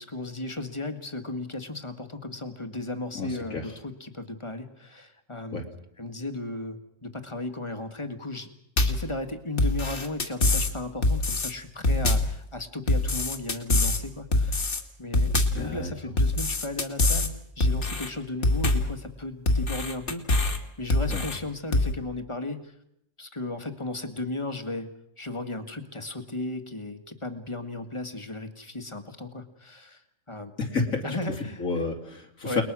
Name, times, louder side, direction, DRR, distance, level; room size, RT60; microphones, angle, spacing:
voice 1, 0.0-5.6 6.0-8.5 8.8-14.7 15.0-22.7 23.2-24.9 25.2-30.5 31.0-31.7 32.4-32.6, left 2 dB, 20° left, 8 dB, 1.9 m, -35 dB
voice 2, 3.1-3.7 5.5-5.6 15.5-15.9 21.1-21.2 30.6-31.0 31.6-32.6, left 4 dB, 90° left, 1 dB, 3.3 m, -30 dB
sound 1, 8.8-9.1 9.6-10.7 11.0-11.5 11.8-12.4 12.9-14.0 14.3-14.8 15.1-15.7 16.2-17.3 17.6-18.1 18.4-18.9 19.5-20.6 20.9-21.4 21.7-21.9, left 2 dB, 60° left, 2.4 m, -24 dB
30.0 x 20.5 x 6.3 m, 0.77 s
omnidirectional pair, 1.4 m